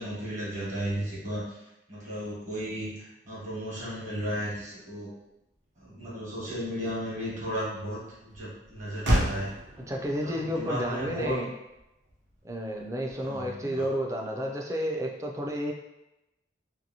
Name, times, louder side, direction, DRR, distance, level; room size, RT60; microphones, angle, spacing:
voice 1, 0.0-1.6 1.9-5.1 5.8-9.5 10.2-11.4 13.2-13.9, equal, 45° right, -7 dB, 1.2 m, -34 dB
Motor vehicle (road), 5.2-13.6, equal, 80° right, 0.7 m, -35 dB
voice 2, 9.9-11.5 12.4-15.7, equal, 15° right, 0 dB, 0.3 m, -31 dB
2.8 x 2.6 x 2.7 m, 0.92 s
head